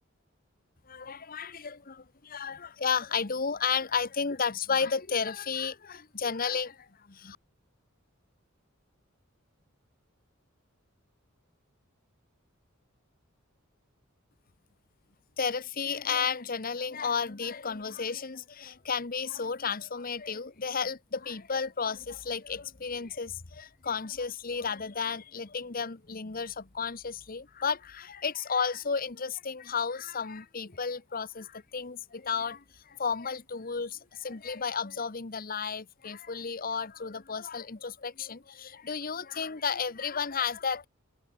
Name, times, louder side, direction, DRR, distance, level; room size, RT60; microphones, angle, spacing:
voice 1, 0.9-6.8 7.1-7.4 15.4-40.9, left 6 dB, 45° left, 1.1 m, -33 dB
head